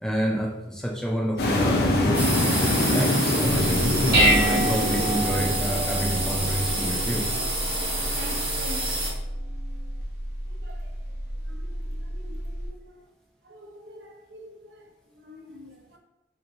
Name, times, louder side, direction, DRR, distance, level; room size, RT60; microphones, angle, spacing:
voice 1, 0.0-2.4 2.9-7.3, right 1 dB, 5° left, 0.4 m, -28 dB
sound 1, 1.4-8.4, left 2 dB, 65° left, 0.5 m, -26 dB
sound 2, 2.1-9.1, right 2 dB, 35° right, 0.8 m, -29 dB
Dishes pots and pans, 3.4-12.7, right 1 dB, 60° right, 0.9 m, -28 dB
voice 2, 8.1-9.4 10.5-10.9 11.2-13.0 13.4-16.0, equal, 80° right, 0.6 m, -46 dB
3.1 x 3.0 x 2.6 m
head